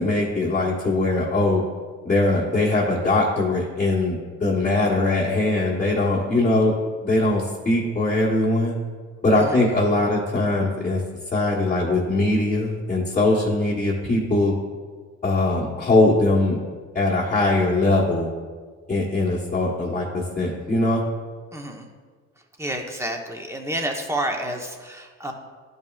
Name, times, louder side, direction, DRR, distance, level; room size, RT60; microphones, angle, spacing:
voice 1, 0.0-1.6 2.0-6.7 7.0-8.7 9.2-11.0 11.3-14.5 15.2-16.6 16.9-18.3 18.9-21.0, left 2 dB, 25° left, -5 dB, 1.2 m, -21 dB
voice 2, 21.5-21.9 22.6-25.3, right 1 dB, 10° right, 2 dB, 1.0 m, -29 dB
11.5 x 5.4 x 2.4 m, 1.5 s
cardioid pair, 90°, 30 cm